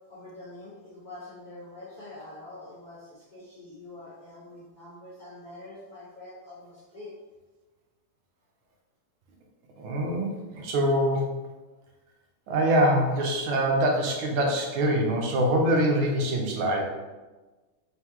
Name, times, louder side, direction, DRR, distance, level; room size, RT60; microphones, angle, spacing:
voice 1, 0.1-7.1, left 2 dB, 75° left, -9 dB, 0.4 m, -45 dB
voice 2, 9.8-11.3 12.5-16.8, right 1 dB, 75° right, 1 dB, 1.5 m, -24 dB
4.0 x 3.0 x 3.4 m, 1.2 s
omnidirectional pair, 2.3 m